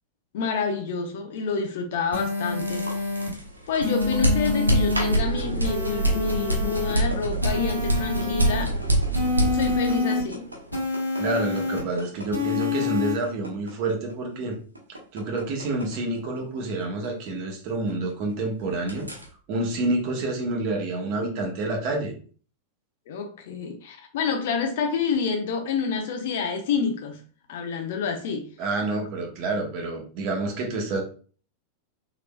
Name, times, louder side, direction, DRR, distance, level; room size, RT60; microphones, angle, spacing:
voice 1, 0.3-3.3 3.7-8.7 9.5-10.5 23.1-27.2 27.5-28.5, left 5 dB, 55° left, 0.6 m, -28 dB
sound 1, 2.1-3.3 3.8-5.2 5.6-7.0 7.4-8.6 9.1-10.2 10.7-11.8 12.3-13.1, left 4 dB, 90° left, 0.9 m, -27 dB
sound 2, 2.5-18.3 18.6-19.3, right 1 dB, 80° right, 0.8 m, -27 dB
voice 2, 11.2-14.6 15.1-19.1 19.5-22.1 28.6-31.0, right 2 dB, 45° right, 1.0 m, -28 dB
3.9 x 3.0 x 2.2 m
figure-of-eight pair, 90°, 0 cm